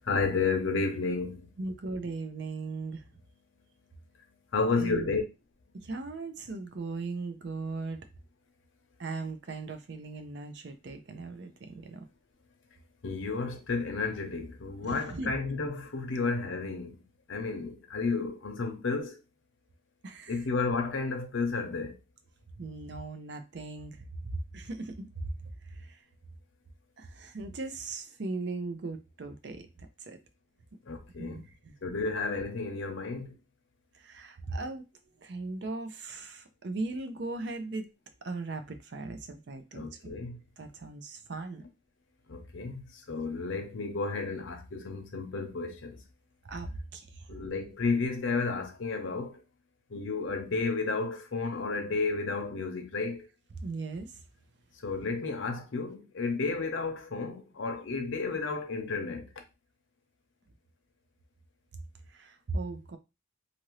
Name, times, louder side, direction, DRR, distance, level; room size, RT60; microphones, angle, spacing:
voice 1, 0.0-1.5 4.5-5.2 13.0-17.0 17.3-19.2 20.3-22.0 30.9-31.4 31.8-33.4 39.7-40.4 42.3-46.0 47.3-49.4 49.9-53.3 54.8-59.3, left 4 dB, 80° left, 0.7 m, -32 dB
voice 2, 1.6-3.0 4.8-5.1 5.7-8.0 9.0-12.0 14.8-15.3 20.0-20.4 22.6-24.0 24.5-25.1 25.9-26.0 27.0-29.7 30.1-30.2 31.2-31.7 34.0-34.8 35.2-37.9 38.2-40.1 40.6-41.6 46.4-47.0 53.6-54.2 62.1-63.0, right 3 dB, 60° right, 0.5 m, -38 dB
2.7 x 2.5 x 3.1 m
head